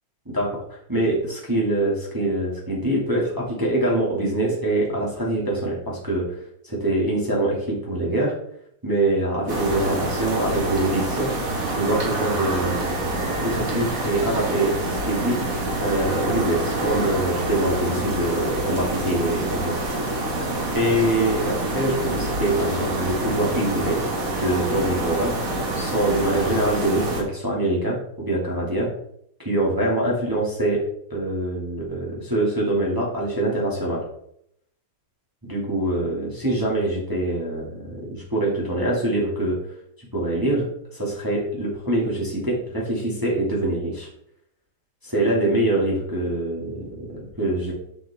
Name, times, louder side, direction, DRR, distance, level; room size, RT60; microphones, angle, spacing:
voice 1, 0.2-6.4 6.6-8.3 8.8-11.3 11.7-13.1 13.4-19.8 20.7-24.0 24.3-25.4 25.7-28.0 28.2-28.9 29.4-30.8 31.1-34.0 35.4-39.6 40.0-44.1 45.0-47.7, right 1 dB, 10° right, -4 dB, 1.6 m, -24 dB
sound 1, 9.5-27.2, right 2 dB, 40° right, 1.3 m, -26 dB
7.1 x 6.2 x 3.5 m, 0.73 s
omnidirectional pair, 3.3 m